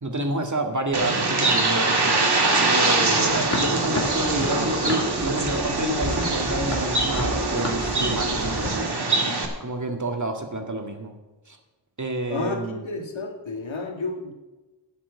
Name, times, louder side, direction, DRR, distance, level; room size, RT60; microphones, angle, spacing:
voice 1, 0.0-8.9 9.2-11.1 11.5-11.6 12.0-12.8, right 1 dB, 40° right, 3 dB, 2.0 m, -29 dB
Bird, 0.9-9.4, right 3 dB, 55° right, 2.1 m, -23 dB
sound 1, 3.3-8.7, left 1 dB, 30° left, 2.6 m, -32 dB
voice 2, 12.3-14.3, left 3 dB, 80° left, 3 dB, 1.8 m, -31 dB
11.5 x 6.1 x 8.6 m, 1.1 s
cardioid pair, 45°, 46 cm